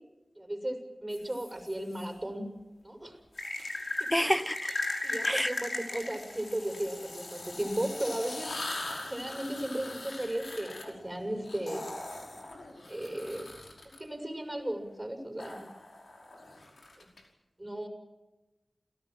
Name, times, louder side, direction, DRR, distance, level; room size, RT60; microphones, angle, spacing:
voice 1, 0.4-2.5 2.8-3.2 4.7-4.8 5.0-8.5 9.1-11.9 12.9-13.5 14.0-15.7 17.0-17.1 17.6-17.9, right 1 dB, 20° right, 4 dB, 6.0 m, -35 dB
sound 1, 1.1-2.0 3.3-14.0 15.4-17.2, left 2 dB, 75° left, 5.3 m, -39 dB
voice 2, 4.1-4.7 5.2-5.5, equal, 5° left, 13 dB, 1.3 m, -28 dB
28.5 x 17.5 x 7.7 m, 1.1 s
wide cardioid pair, 60°, 0 cm